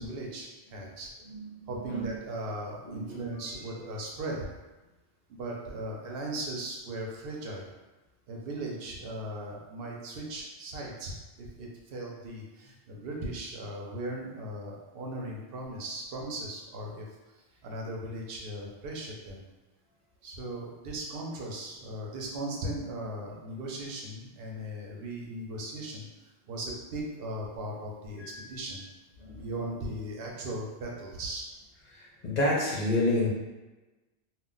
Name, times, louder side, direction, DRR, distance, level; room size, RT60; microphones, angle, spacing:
voice 1, 0.0-1.1 1.7-4.5 5.4-7.6 8.3-17.1 17.6-19.4 20.2-26.0 26.5-28.9 29.3-31.5, right 1 dB, 60° right, -1 dB, 0.8 m, -38 dB
voice 2, 1.3-2.1 2.8-3.2 28.2-28.4 29.2-29.5 31.9-33.3, left 1 dB, 45° left, -4 dB, 0.6 m, -30 dB
2.3 x 2.2 x 3.7 m, 1.1 s
omnidirectional pair, 1.2 m